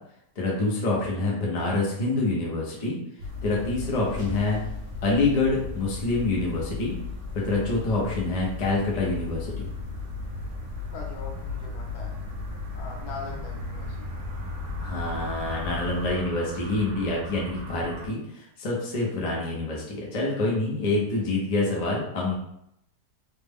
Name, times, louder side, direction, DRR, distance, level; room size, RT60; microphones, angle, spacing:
voice 1, 0.4-3.0 3.4-4.6 5.0-7.0 7.3-9.5 14.8-22.4, left 2 dB, 40° left, -3 dB, 0.5 m, -26 dB
sound 1, 3.2-16.1, left 5 dB, 60° right, 0.6 m, -36 dB
sound 2, 3.5-5.6, right 1 dB, 15° right, 0.7 m, -45 dB
sound 3, 5.9-18.1, right 3 dB, 75° right, 1.1 m, -42 dB
voice 2, 10.9-12.2 12.8-14.1, left 2 dB, 70° left, 0 dB, 1.1 m, -40 dB
3.2 x 2.2 x 3.4 m, 0.77 s
omnidirectional pair, 1.8 m